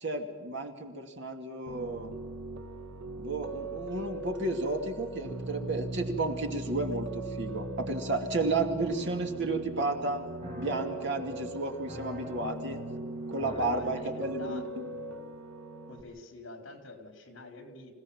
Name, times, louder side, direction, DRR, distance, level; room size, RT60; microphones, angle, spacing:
voice 1, 0.0-2.1 3.2-10.2 10.6-12.8 13.3-14.9, right 2 dB, 60° right, 4 dB, 2.4 m, -32 dB
Piano, 1.7-16.0, right 2 dB, 80° right, 2.0 m, -40 dB
sound 1, 9.8-15.4, left 1 dB, 35° right, 8.0 m, -46 dB
voice 2, 13.5-14.6 15.9-17.9, left 2 dB, 65° left, 5 dB, 4.4 m, -46 dB
26.5 x 16.5 x 7.3 m, 1.4 s
head